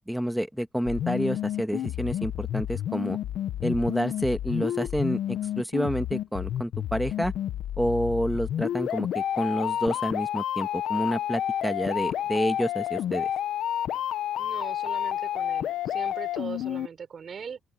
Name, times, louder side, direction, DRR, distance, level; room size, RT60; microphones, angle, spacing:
voice 1, 0.1-3.2 3.6-7.3 7.8-13.3, equal, ahead, 1.5 m, -29 dB
sound 1, 0.9-16.9, left 11 dB, 75° left, 1.0 m, -30 dB
voice 2, 14.4-17.6, right 6 dB, 50° right, 4.9 m, -40 dB
open air
cardioid pair, 90°, 0 cm